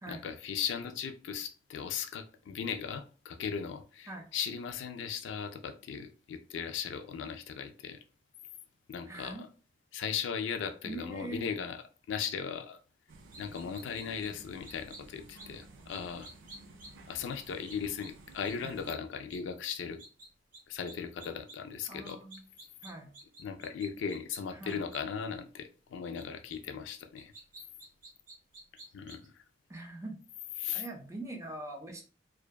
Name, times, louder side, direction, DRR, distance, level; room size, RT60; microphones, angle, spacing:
voice 1, 0.1-8.0 8.9-9.4 9.9-12.8 13.4-16.3 17.1-20.0 20.7-22.2 23.4-27.3 28.9-29.3 30.6-30.8, left 7 dB, 70° left, 0.3 m, -37 dB
voice 2, 9.1-9.4 10.8-11.4 18.5-18.8 21.9-22.4 22.8-23.1 24.5-24.8 29.7-30.2 30.7-32.0, right 2 dB, 15° right, 0.4 m, -43 dB
sound 1, 13.1-18.9, right 2 dB, 85° right, 0.4 m, -54 dB
sound 2, 13.3-14.3 14.6-15.0 15.4-15.5 15.9-16.9 17.7-18.1 18.4-18.5 18.9-19.0 19.3-19.4 19.7-20.3 20.5-20.6 20.9-21.6 22.0-24.4 24.7-25.0 26.2-26.3 26.5-26.6 27.2-29.3, right 2 dB, 45° right, 0.7 m, -50 dB
2.6 x 2.2 x 2.2 m
head